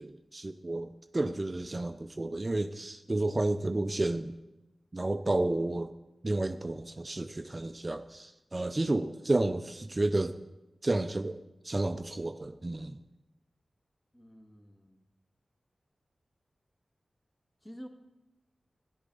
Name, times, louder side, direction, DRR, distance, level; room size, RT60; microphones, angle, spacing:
voice 1, 0.0-4.3 4.9-5.9 6.2-10.4 10.8-13.0, right 2 dB, 35° right, 8 dB, 0.5 m, -31 dB
voice 2, 14.1-15.0 17.6-17.9, equal, 20° left, 3 dB, 1.8 m, -49 dB
13.5 x 11.0 x 3.9 m, 1.0 s
cardioid pair, 50°, 0 cm